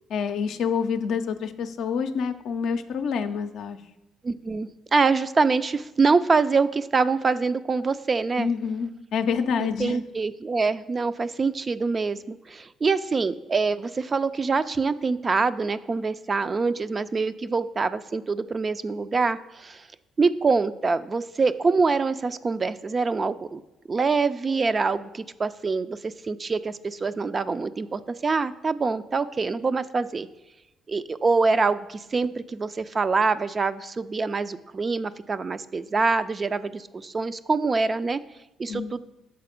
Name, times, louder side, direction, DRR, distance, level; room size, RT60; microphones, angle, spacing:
voice 1, 0.1-3.8 8.4-10.0 38.7-38.9, left 6 dB, 70° left, 8 dB, 0.4 m, -27 dB
voice 2, 4.2-8.5 9.6-19.8 20.2-23.6 23.9-30.3 30.9-38.2 38.6-39.0, right 4 dB, 40° right, 12 dB, 0.3 m, -25 dB
6.8 x 4.1 x 5.1 m, 0.98 s
hypercardioid pair, 50°, 0 cm